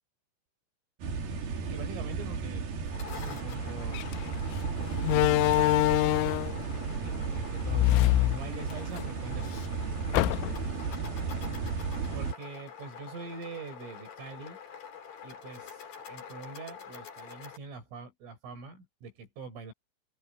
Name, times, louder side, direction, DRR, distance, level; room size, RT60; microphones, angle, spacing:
sound 1, 1.0-12.3, right 5 dB, 55° right, 4.5 m, -34 dB
voice 1, 1.6-4.5 4.8-6.4 7.0-9.7 12.1-14.6 15.2-19.7, right 4 dB, 85° right, 8.7 m, -44 dB
sound 2, 2.7-17.6, left 7 dB, 50° left, 5.0 m, -46 dB
Slam, 3.9-4.1 5.0-6.6 7.6-9.0 9.4-9.5 10.1-10.8, left 19 dB, 90° left, 3.2 m, -24 dB
omnidirectional pair, 5.6 m